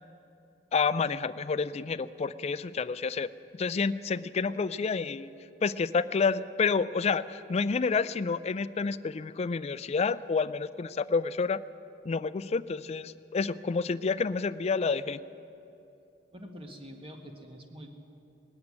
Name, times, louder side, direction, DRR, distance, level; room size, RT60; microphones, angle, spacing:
voice 1, 0.7-5.3 5.6-11.6 12.0-15.2, left 5 dB, 35° left, 14 dB, 0.4 m, -29 dB
voice 2, 16.3-17.9, equal, 30° right, 2 dB, 1.4 m, -45 dB
19.0 x 7.9 x 9.6 m, 2.7 s
head